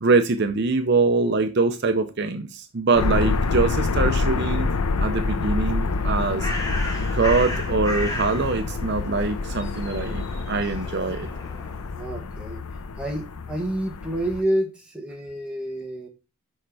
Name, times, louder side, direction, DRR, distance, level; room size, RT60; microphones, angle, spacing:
voice 1, 0.0-4.7 5.0-6.5 7.1-11.3, right 3 dB, 50° right, 0.6 m, -23 dB
sound 1, 3.0-14.4, left 3 dB, 90° left, 0.6 m, -27 dB
Bird, 5.9-11.9, left 1 dB, 15° left, 1.5 m, -35 dB
voice 2, 11.9-12.6 13.0-16.1, right 1 dB, 5° right, 1.5 m, -28 dB
6.4 x 5.7 x 4.7 m
head